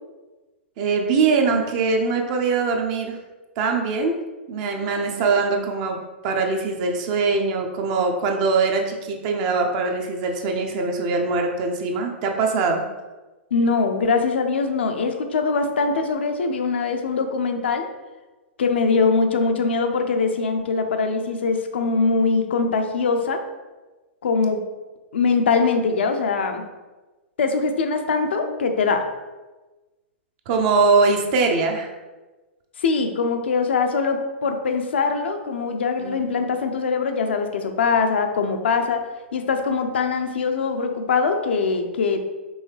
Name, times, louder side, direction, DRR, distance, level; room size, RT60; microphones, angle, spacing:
voice 1, 0.8-3.2 3.6-4.1 4.5-6.0 6.2-12.8 30.5-31.9 36.0-36.2, right 4 dB, 40° right, 3 dB, 0.6 m, -22 dB
voice 2, 13.5-17.9 18.6-23.4 24.2-24.6 25.1-26.6 27.4-29.0 32.8-39.0 39.3-42.2, left 4 dB, 65° left, 5 dB, 0.5 m, -22 dB
5.4 x 2.8 x 3.2 m, 1.2 s
figure-of-eight pair, 105°, 7 cm